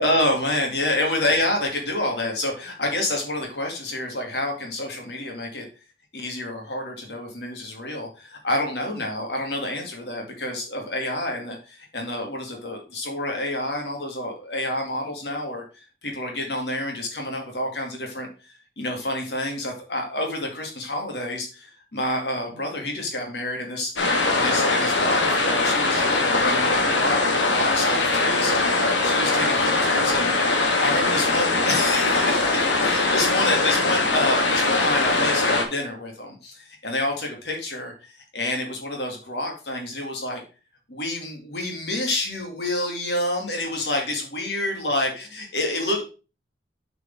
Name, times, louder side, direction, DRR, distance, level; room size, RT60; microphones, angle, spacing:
voice 1, 0.0-5.7 6.1-30.4 30.6-40.4 40.9-46.0, left 1 dB, 65° left, 2 dB, 2.3 m, -28 dB
sound 1, 24.0-35.6, left 2 dB, 80° left, 1.5 m, -21 dB
8.1 x 5.0 x 3.5 m, 0.33 s
head